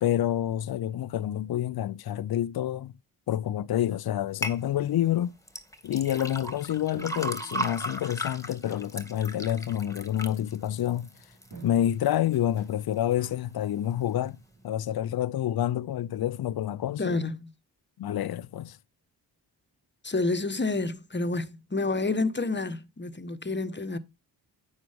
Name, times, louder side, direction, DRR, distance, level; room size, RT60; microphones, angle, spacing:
voice 1, 0.0-2.9 3.3-5.3 5.8-11.1 11.6-14.4 14.6-17.2 18.0-18.8, left 11 dB, 60° left, 0.5 m, -28 dB
sound 1, 4.4-4.6 5.5-11.6 12.1-12.6 13.1-13.2, equal, 5° left, 1.9 m, -36 dB
sound 2, 6.6-14.7, right 5 dB, 80° right, 4.2 m, -51 dB
voice 2, 17.0-17.4 20.0-24.0, left 3 dB, 25° left, 1.2 m, -29 dB
9.4 x 6.4 x 3.5 m
cardioid pair, 50°, 43 cm